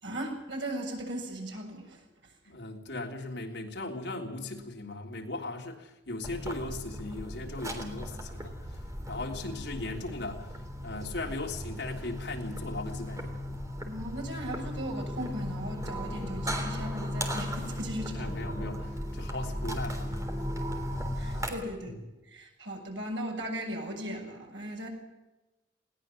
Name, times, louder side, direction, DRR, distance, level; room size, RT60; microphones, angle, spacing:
voice 1, 0.0-2.0 13.8-18.3 21.2-22.0 22.3-24.9, right 1 dB, 80° right, 1 dB, 7.5 m, -37 dB
voice 2, 2.5-8.5 9.1-10.5 10.8-13.4 18.1-20.3 21.2-21.4, left 2 dB, 65° left, 1 dB, 3.4 m, -38 dB
sound 1, 6.2-21.5, equal, 15° right, 3.4 m, -36 dB
20.5 x 18.5 x 7.7 m, 1.0 s
head